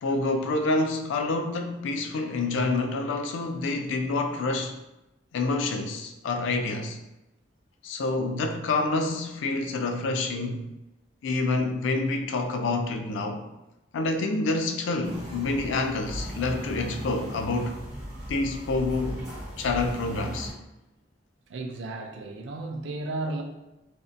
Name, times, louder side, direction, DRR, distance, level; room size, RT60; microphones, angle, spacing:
voice 1, 0.0-4.7 5.3-7.0 7.8-10.6 11.2-13.5 13.9-17.8 18.3-19.2 19.6-20.5, left 3 dB, 90° left, 0.3 m, -27 dB
sound 1, 15.0-20.5, equal, 15° right, 1.0 m, -37 dB
voice 2, 21.5-23.4, right 2 dB, 85° right, 0.4 m, -33 dB
2.6 x 2.1 x 2.5 m
head